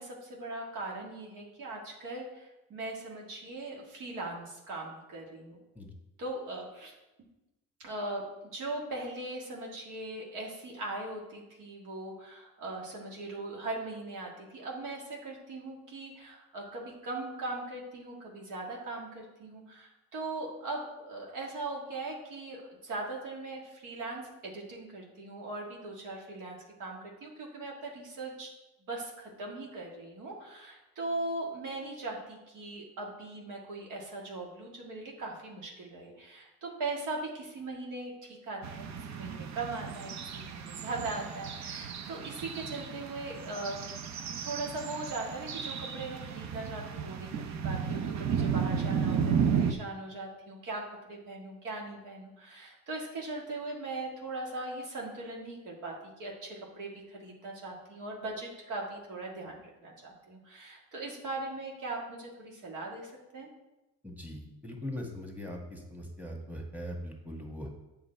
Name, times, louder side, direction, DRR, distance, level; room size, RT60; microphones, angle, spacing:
voice 1, 0.0-5.6 6.2-6.9 7.8-28.5 28.9-43.8 44.4-63.5, right 2 dB, 90° right, -1 dB, 1.8 m, -40 dB
sound 1, 38.6-49.7, right 7 dB, 65° right, 0.7 m, -33 dB
voice 2, 64.0-67.7, left 1 dB, 5° right, 0 dB, 1.6 m, -40 dB
7.7 x 5.7 x 4.4 m, 0.99 s
cardioid pair, 90°, 30 cm